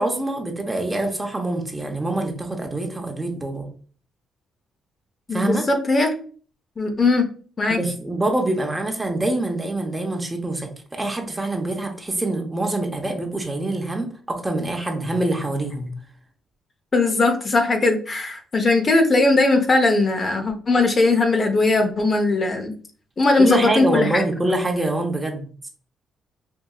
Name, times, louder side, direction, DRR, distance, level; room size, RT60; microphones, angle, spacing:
voice 1, 0.0-3.7 5.3-5.6 7.7-15.9 23.4-25.4, right 2 dB, 15° right, 3 dB, 0.8 m, -25 dB
voice 2, 5.3-6.1 6.8-7.3 7.6-7.8 16.9-22.7 23.2-24.2, left 3 dB, 35° left, 5 dB, 0.7 m, -19 dB
4.5 x 2.6 x 2.3 m, 0.43 s
cardioid pair, 90°, 0 cm